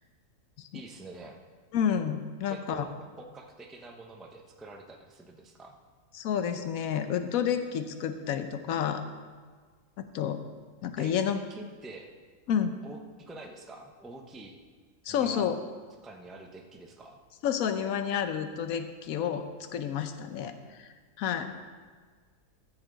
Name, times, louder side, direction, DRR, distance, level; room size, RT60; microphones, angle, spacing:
voice 1, 0.7-1.4 2.5-5.8 11.0-11.1 11.5-12.1 12.8-14.5 15.1-15.5 16.0-17.2, right 2 dB, ahead, 2 dB, 0.4 m, -46 dB
voice 2, 1.7-2.9 6.1-9.0 10.0-10.4 10.8-11.4 12.5-12.8 15.0-15.6 17.4-19.4 19.7-21.6, left 8 dB, 70° left, 9 dB, 1.1 m, -30 dB
14.5 x 7.2 x 3.9 m, 1.5 s
omnidirectional pair, 1.7 m